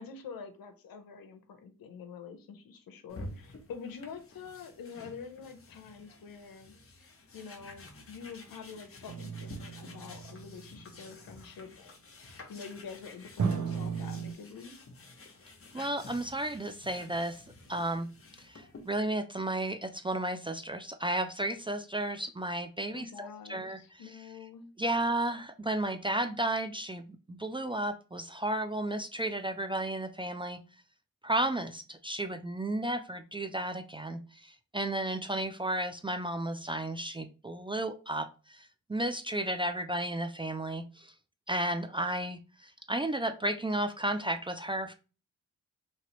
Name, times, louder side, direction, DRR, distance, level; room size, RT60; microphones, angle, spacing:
voice 1, 0.0-14.8 22.9-24.7, left 6 dB, 70° left, 7 dB, 0.7 m, -46 dB
sound 1, 3.1-19.0, left 2 dB, 40° left, 0.9 m, -51 dB
sound 2, 9.1-10.8 13.4-14.3, right 6 dB, 55° right, 0.7 m, -35 dB
voice 2, 15.7-17.4 17.7-18.1 18.4-23.8 24.8-30.6 31.2-41.1 41.5-44.9, right 1 dB, 15° right, 7 dB, 0.4 m, -33 dB
3.0 x 2.9 x 2.9 m, 0.33 s
supercardioid pair, 50°, 36 cm